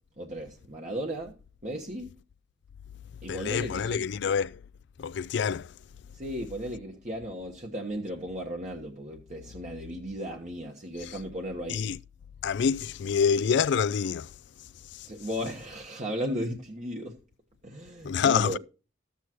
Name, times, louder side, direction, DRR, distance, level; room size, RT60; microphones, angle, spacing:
voice 1, 0.2-2.1 3.2-4.0 6.1-11.9 15.1-17.2 17.6-18.6, equal, 40° right, 1.2 m, -35 dB
voice 2, 3.3-4.6 5.0-5.8 11.0-11.2 11.7-12.0 12.4-15.1 18.0-18.6, left 6 dB, 65° left, 0.4 m, -27 dB
13.5 x 8.2 x 3.0 m
head